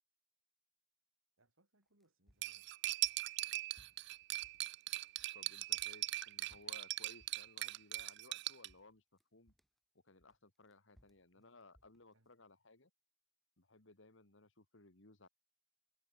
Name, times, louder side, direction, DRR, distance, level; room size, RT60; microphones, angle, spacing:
voice 1, 1.4-2.7 11.1-11.5 12.1-12.5, right 1 dB, 80° right, 5.6 m, -76 dB
sound 1, 2.0-5.4 5.7-8.4 8.7-9.8 10.2-12.3, equal, ahead, 2.9 m, -71 dB
Cutlery silverware, 2.4-8.7, right 16 dB, 55° right, 0.3 m, -40 dB
voice 2, 5.3-9.0 9.3-9.5 10.0-12.9 13.6-15.3, left 3 dB, 65° left, 2.3 m, -61 dB
head